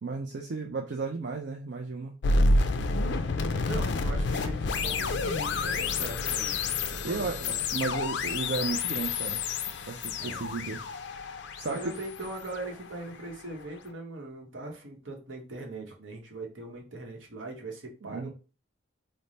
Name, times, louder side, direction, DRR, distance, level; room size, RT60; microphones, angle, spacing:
voice 1, 0.0-2.2 7.0-9.4 9.9-10.8 11.6-12.0 18.0-18.3, right 4 dB, 55° right, 2 dB, 0.4 m, -34 dB
sound 1, 2.2-13.3, left 3 dB, 60° left, 0.4 m, -29 dB
voice 2, 3.6-6.6 6.9-7.6 10.2-10.8 11.6-18.3, right 2 dB, 70° right, 1 dB, 1.0 m, -40 dB
3.3 x 2.1 x 3.9 m, 0.34 s
head